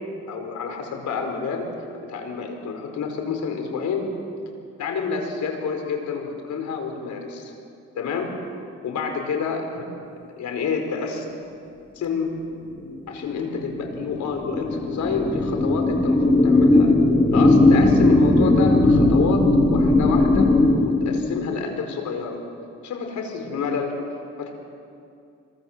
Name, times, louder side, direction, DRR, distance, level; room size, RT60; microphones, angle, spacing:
voice 1, 0.3-1.7 2.0-4.1 4.8-7.5 7.9-8.3 8.8-9.9 10.4-11.2 11.9-12.3 13.1-16.9 17.3-20.5 20.8-22.4 22.8-23.9 24.4-24.5, left 5 dB, 70° left, 4 dB, 4.9 m, -28 dB
sound 1, 12.9-21.7, left 2 dB, 15° left, 2.7 m, -18 dB
26.0 x 23.0 x 7.6 m, 2.4 s
cardioid pair, 90°, 30 cm